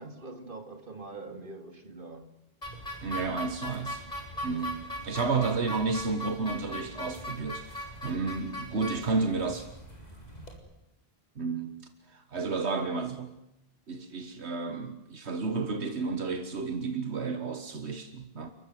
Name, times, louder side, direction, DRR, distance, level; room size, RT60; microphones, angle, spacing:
voice 1, 0.0-2.3 4.9-5.0, right 3 dB, 55° right, 2.8 m, -44 dB
sound 1, 2.6-10.6, equal, 40° left, 4.7 m, -40 dB
voice 2, 3.0-4.1 4.4-9.7 11.4-11.8 12.1-13.3 13.9-18.5, right 4 dB, 85° right, 1.8 m, -32 dB
29.5 x 15.0 x 9.3 m
omnidirectional pair, 1.1 m